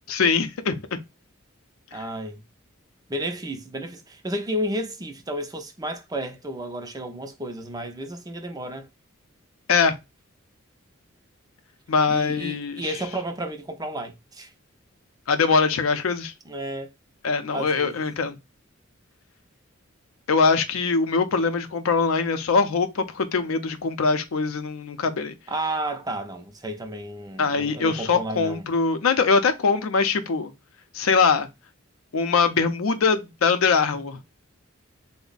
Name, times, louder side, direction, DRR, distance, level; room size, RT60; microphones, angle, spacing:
voice 1, 0.1-1.0 1.9-2.0 9.7-9.9 11.9-12.9 15.3-16.3 17.2-18.4 20.3-25.3 27.4-30.5 30.9-31.5 32.1-34.2, left 4 dB, 80° left, 0.5 m, -22 dB
voice 2, 1.9-2.4 3.1-8.9 12.1-14.5 16.5-16.9 17.5-18.0 25.5-28.7, right 1 dB, 20° right, 0.5 m, -32 dB
3.3 x 2.1 x 3.8 m
head